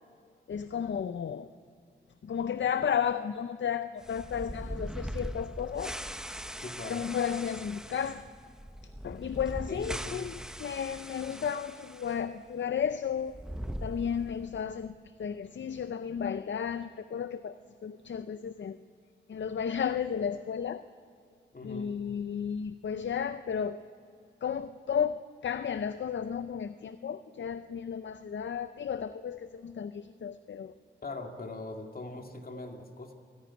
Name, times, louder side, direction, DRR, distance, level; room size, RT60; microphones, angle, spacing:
voice 1, 0.5-1.5 2.2-6.0 6.8-8.3 9.0-13.4 13.8-17.5 17.8-18.8 19.3-20.8 21.6-23.8 24.4-30.7, left 7 dB, 65° left, 12 dB, 0.6 m, -33 dB
sound 1, 4.0-12.2 12.5-12.6 13.2-14.6, equal, 5° right, 0.9 m, -41 dB
voice 2, 6.6-7.0 9.7-10.2 21.5-21.9 31.0-33.1, left 2 dB, 45° left, 4 dB, 2.2 m, -41 dB
26.5 x 10.5 x 9.7 m, 2.4 s
wide cardioid pair, 70°, 20 cm